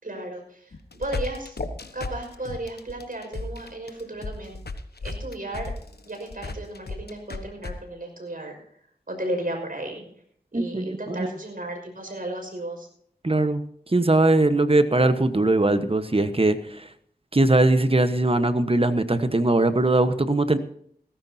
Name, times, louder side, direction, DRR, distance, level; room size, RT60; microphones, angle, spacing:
voice 1, 0.0-1.6 1.9-4.6 5.0-5.7 6.1-8.6 9.1-10.0 10.5-12.9, right 1 dB, 60° right, 4 dB, 5.7 m, -34 dB
sound 1, 0.7-7.7, left 3 dB, 75° left, 1.2 m, -34 dB
voice 2, 10.5-11.3 13.2-13.6 13.9-16.9 17.3-20.6, right 2 dB, 35° right, 10 dB, 1.3 m, -21 dB
17.5 x 15.0 x 2.8 m, 0.64 s
wide cardioid pair, 45°, 17 cm